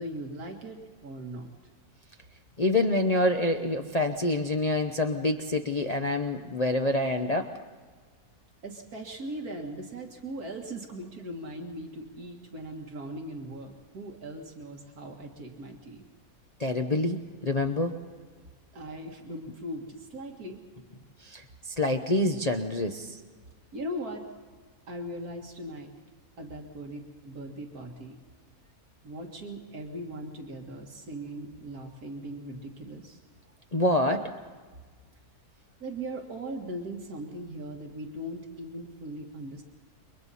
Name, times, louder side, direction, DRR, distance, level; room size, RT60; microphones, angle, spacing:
voice 1, 0.0-1.5 8.6-16.0 18.7-20.6 23.7-24.3 24.9-25.9 26.4-28.2 29.0-33.2 35.8-39.6, right 1 dB, 80° right, 2 dB, 2.3 m, -39 dB
voice 2, 2.6-7.5 16.6-17.9 21.2-23.2 33.7-34.3, left 1 dB, 30° left, 4 dB, 0.9 m, -27 dB
29.0 x 23.5 x 4.2 m, 1.5 s
omnidirectional pair, 1.6 m